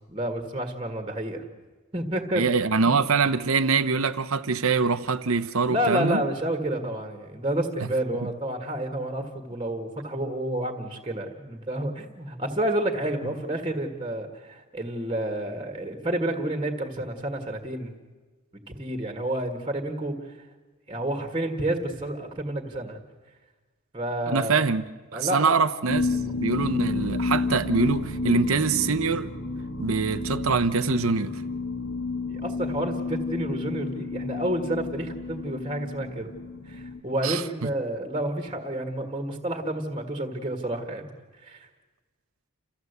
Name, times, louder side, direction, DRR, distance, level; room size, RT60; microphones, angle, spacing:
voice 1, 0.1-1.4 1.9-2.4 2.8-2.9 5.7-17.9 18.7-20.4 20.9-23.0 23.9-24.6 25.1-25.6 32.3-36.3 36.7-41.1 41.4-41.7, right 1 dB, 25° right, 1.7 m, -30 dB
voice 2, 2.3-6.2 7.8-7.9 8.2-8.3 24.3-24.8 25.1-29.3 29.8-31.4 37.2-37.7, right 4 dB, 75° right, 0.8 m, -24 dB
sound 1, 25.9-37.0, left 3 dB, 65° left, 1.8 m, -31 dB
29.0 x 14.5 x 8.1 m
head